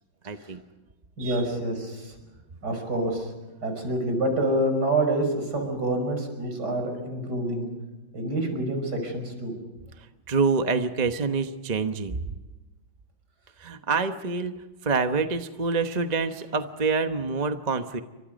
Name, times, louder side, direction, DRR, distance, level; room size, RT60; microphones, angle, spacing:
voice 1, 0.2-0.6 1.2-1.5 10.0-12.2 13.6-18.0, right 4 dB, 30° right, 7 dB, 0.8 m, -27 dB
voice 2, 1.2-2.1 2.6-3.3 3.6-7.7 8.1-9.5, right 1 dB, 55° right, 5 dB, 6.0 m, -27 dB
29.5 x 25.0 x 5.2 m, 1.1 s
omnidirectional pair, 2.1 m